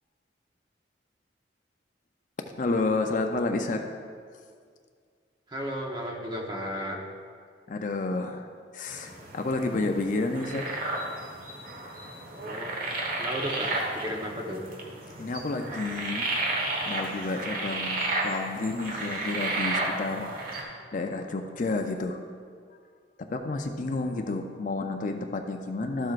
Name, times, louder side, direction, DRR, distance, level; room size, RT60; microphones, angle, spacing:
voice 1, 2.6-3.8 7.7-10.6 15.2-16.3 16.9-20.3 20.9-22.2 23.2-26.1, left 3 dB, 45° left, 5 dB, 0.5 m, -30 dB
voice 2, 5.5-7.0 12.4-12.7 13.2-14.6, equal, 25° right, 0 dB, 1.0 m, -34 dB
sound 1, 8.9-20.6, right 2 dB, 50° right, 1.3 m, -33 dB
12.5 x 7.5 x 2.5 m, 2.1 s
head